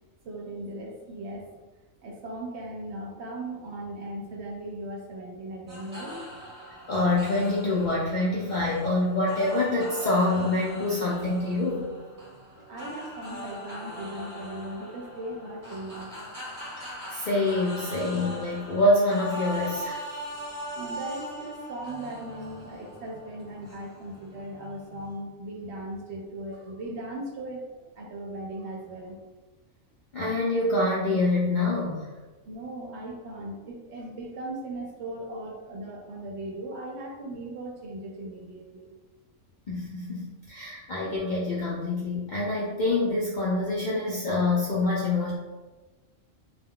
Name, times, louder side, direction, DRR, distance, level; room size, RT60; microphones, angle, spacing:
voice 1, 0.2-1.5 2.0-6.2 12.7-16.1 20.7-29.2 32.4-38.9, right 1 dB, 65° right, 0 dB, 0.8 m, -38 dB
sound 1, 5.7-25.2, equal, 20° right, 0.7 m, -41 dB
voice 2, 6.9-11.9 17.1-20.0 30.1-32.1 39.7-45.3, left 2 dB, 65° left, -6 dB, 0.4 m, -26 dB
2.3 x 2.2 x 3.5 m, 1.2 s
omnidirectional pair, 1.3 m